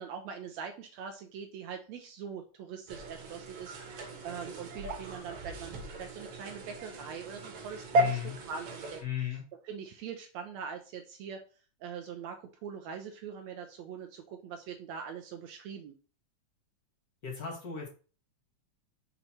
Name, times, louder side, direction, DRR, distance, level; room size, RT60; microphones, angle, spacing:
voice 1, 0.0-8.2 8.5-9.0 9.6-11.4 11.8-15.9, right 7 dB, 75° right, 4 dB, 1.7 m, -42 dB
sound 1, 2.9-9.0, right 1 dB, 60° right, 2.1 m, -35 dB
voice 2, 7.9-8.3 9.0-9.4 17.2-17.9, left 9 dB, 45° left, 0 dB, 1.4 m, -35 dB
6.0 x 4.0 x 4.4 m, 0.37 s
omnidirectional pair, 3.5 m